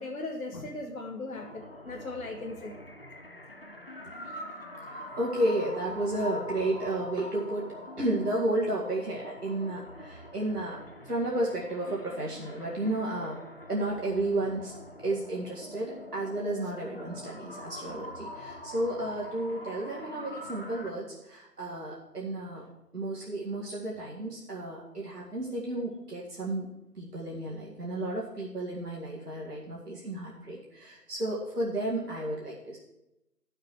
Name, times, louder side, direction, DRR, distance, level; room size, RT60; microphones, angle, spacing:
voice 1, 0.0-2.8, left 2 dB, 60° left, 1 dB, 1.2 m, -38 dB
sound 1, 1.3-20.9, left 1 dB, 40° left, 0.6 m, -44 dB
voice 2, 4.9-13.4 13.7-14.7 15.0-22.6 22.9-26.7 27.0-32.8, right 1 dB, 75° right, -5 dB, 2.2 m, -32 dB
12.0 x 6.7 x 4.7 m, 0.92 s
figure-of-eight pair, 160°, 47 cm